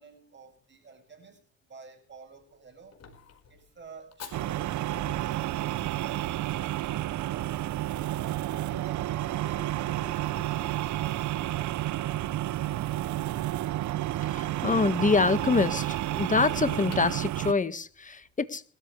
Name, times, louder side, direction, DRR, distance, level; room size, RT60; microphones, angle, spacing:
voice 1, 0.0-3.0 3.5-4.7 5.0-6.4 6.7-7.7 8.1-13.4, right 5 dB, 35° right, 6.9 m, -51 dB
Fire, 2.1-18.3, left 5 dB, 55° left, 4.9 m, -53 dB
sound 1, 4.3-17.5, right 15 dB, 70° right, 0.6 m, -31 dB
voice 2, 14.2-18.6, left 4 dB, 25° left, 1.6 m, -26 dB
22.0 x 13.5 x 3.3 m
cardioid pair, 90°, 30 cm